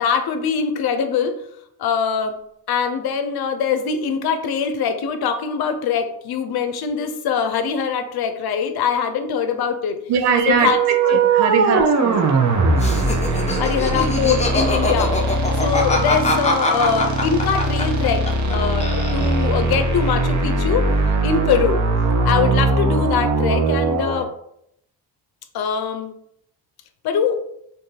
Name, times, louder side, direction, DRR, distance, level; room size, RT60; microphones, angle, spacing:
voice 1, 0.0-1.4 1.8-2.4 2.7-10.0 10.5-11.2 13.6-18.2 18.5-20.9 21.2-21.8 22.2-24.3 25.5-26.1 27.0-27.4, left 6 dB, 60° left, 8 dB, 0.6 m, -22 dB
voice 2, 10.1-12.4 13.2-13.6, right 6 dB, 80° right, 6 dB, 0.6 m, -22 dB
sound 1, 10.3-24.2, right 3 dB, 45° right, 0.8 m, -20 dB
Laughter, 12.8-18.6 18.8-19.6, left 2 dB, 15° left, 0.6 m, -23 dB
2.7 x 2.6 x 3.8 m, 0.74 s
cardioid pair, 70°, 42 cm